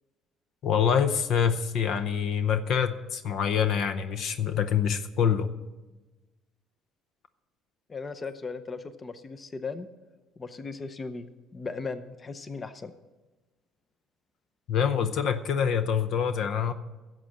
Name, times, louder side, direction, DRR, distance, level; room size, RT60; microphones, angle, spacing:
voice 1, 0.6-5.5 14.7-16.7, left 7 dB, 60° left, 11 dB, 0.7 m, -25 dB
voice 2, 7.9-9.9 10.4-12.9, left 4 dB, 25° left, 12 dB, 0.7 m, -37 dB
11.0 x 7.5 x 7.8 m, 1.2 s
cardioid pair, 120°, 0 cm